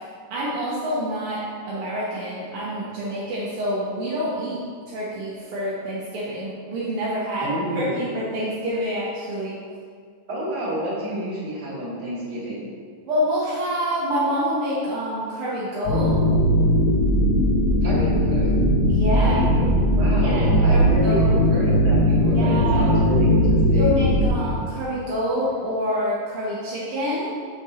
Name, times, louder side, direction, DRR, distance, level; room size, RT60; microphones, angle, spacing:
voice 1, 0.3-4.6 4.9-9.6 13.1-16.2 18.9-19.4 20.2-21.3 22.3-23.0 23.8-27.3, equal, 65° right, -7 dB, 1.4 m, -27 dB
voice 2, 7.4-8.0 10.3-12.7 17.8-18.5 19.2-24.0, right 1 dB, 35° right, -8 dB, 2.3 m, -29 dB
sound 1, 15.8-24.3, equal, 65° left, 3.4 m, -19 dB
6.4 x 6.2 x 4.2 m, 2.1 s
omnidirectional pair, 3.9 m